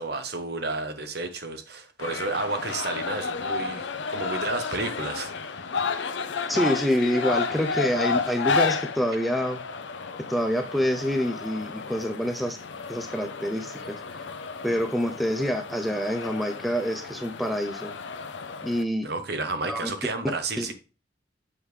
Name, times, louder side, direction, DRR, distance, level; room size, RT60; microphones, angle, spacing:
voice 1, 0.0-5.3 19.0-20.7, right 3 dB, 55° right, 0.9 m, -31 dB
sound 1, 2.0-18.8, left 4 dB, 70° left, 0.6 m, -32 dB
voice 2, 6.5-9.6 10.3-12.6 12.9-14.0 14.6-17.9 18.6-19.1 19.6-19.9 20.6-20.7, equal, ahead, 0.4 m, -27 dB
7.3 x 5.0 x 3.2 m
head